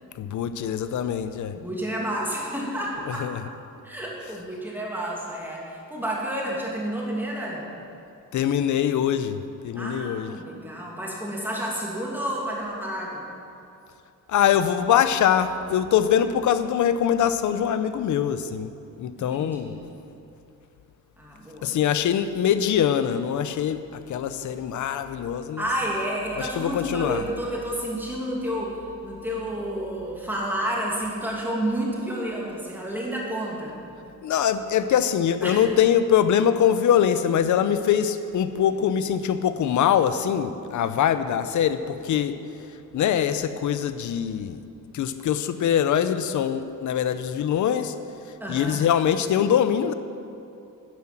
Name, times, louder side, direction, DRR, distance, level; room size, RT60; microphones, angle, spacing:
voice 1, 0.2-1.6 3.1-3.4 8.3-10.3 14.3-18.7 19.0-19.8 21.6-23.8 24.1-25.6 26.4-27.2 34.2-42.4 42.9-44.6 44.9-48.0 48.5-49.9, left 9 dB, 65° left, 11 dB, 0.7 m, -23 dB
voice 2, 1.5-3.2 3.8-7.6 9.8-13.2 19.2-19.8 21.2-21.8 25.6-33.7 35.4-35.6 40.9-41.1 48.4-48.8, right 1 dB, 5° right, -4 dB, 2.4 m, -30 dB
10.0 x 9.7 x 7.6 m, 2.6 s
cardioid pair, 160°, 32 cm